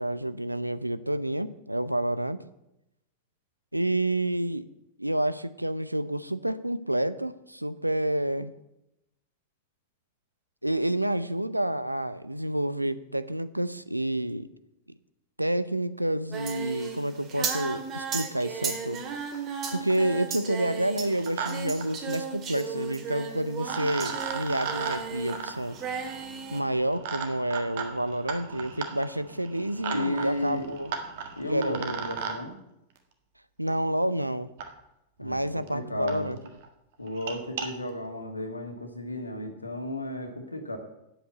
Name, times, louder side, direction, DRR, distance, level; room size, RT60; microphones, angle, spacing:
voice 1, 0.0-2.4 3.7-4.7 5.0-8.5 10.6-14.5 15.4-19.0 19.7-25.8 26.5-30.9 31.4-32.1 33.6-34.5 35.2-36.4, right 1 dB, 85° right, 15 dB, 0.5 m, -29 dB
Singing, 16.3-25.4 25.7-26.6, right 5 dB, 30° right, 2.0 m, -35 dB
sound 1, 19.3-19.4 19.7-20.1 21.0-21.5 21.8-21.9 23.1-23.2 23.6-32.4 33.7-33.8 34.6-34.7 35.3-35.4 35.7-35.8 36.1-36.2 36.5-36.7 37.1-37.7, right 6 dB, 55° right, 1.6 m, -36 dB
voice 2, 29.9-30.7 31.3-32.6 35.2-36.3 37.0-40.8, left 1 dB, 85° left, 5 dB, 1.7 m, -33 dB
9.0 x 8.0 x 7.9 m, 0.87 s
figure-of-eight pair, 90°, 0 cm